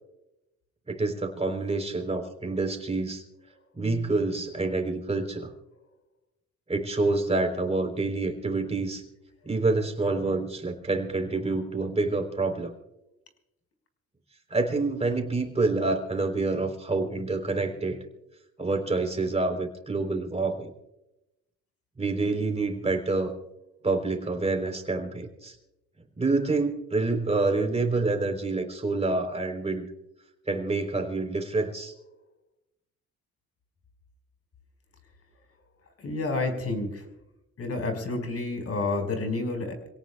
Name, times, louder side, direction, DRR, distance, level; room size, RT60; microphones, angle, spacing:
voice 1, 0.9-3.2 3.8-5.5 6.7-9.0 9.4-12.7 14.5-18.0 18.6-20.7 22.0-23.3 23.8-25.6 26.2-29.9 30.5-31.9, right 3 dB, 20° right, 3 dB, 3.8 m, -27 dB
voice 2, 36.0-37.0 37.6-39.9, left 2 dB, 50° left, 5 dB, 5.1 m, -29 dB
27.5 x 17.5 x 2.4 m, 0.92 s
cardioid pair, 90°, 30 cm